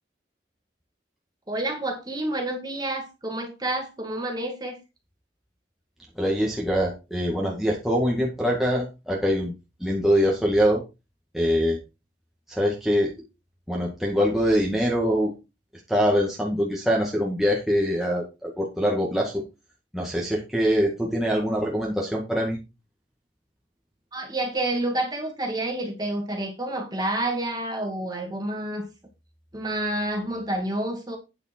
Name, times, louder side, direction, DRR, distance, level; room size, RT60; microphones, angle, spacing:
voice 1, 1.5-4.8 24.1-28.9 29.5-31.2, right 1 dB, 20° right, 2.3 m, -29 dB
voice 2, 6.2-9.5 9.8-10.8 11.3-11.8 12.5-13.1 13.7-15.3 15.9-19.4 19.9-22.6, equal, ahead, 1.9 m, -23 dB
9.2 x 6.8 x 4.4 m
head